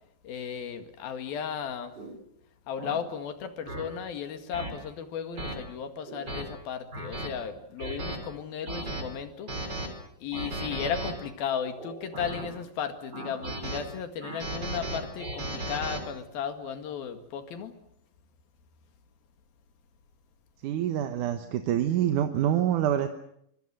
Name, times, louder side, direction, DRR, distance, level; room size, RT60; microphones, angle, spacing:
voice 1, 0.2-2.0 2.7-9.9 10.2-17.7, left 7 dB, 85° left, 8 dB, 3.9 m, -35 dB
sound 1, 2.0-2.1 2.8-3.0 3.7-3.8 4.5-4.7 5.4-5.5 6.1-6.4 6.9-7.3 7.8-8.2 8.6-9.0 9.5-9.9 10.3-11.1 11.8-12.5 13.1-13.8 14.2-16.0, right 1 dB, 30° right, 4.8 m, -35 dB
voice 2, 20.6-23.1, right 10 dB, 65° right, 7 dB, 2.5 m, -26 dB
24.5 x 24.0 x 7.7 m, 0.73 s
omnidirectional pair, 4.1 m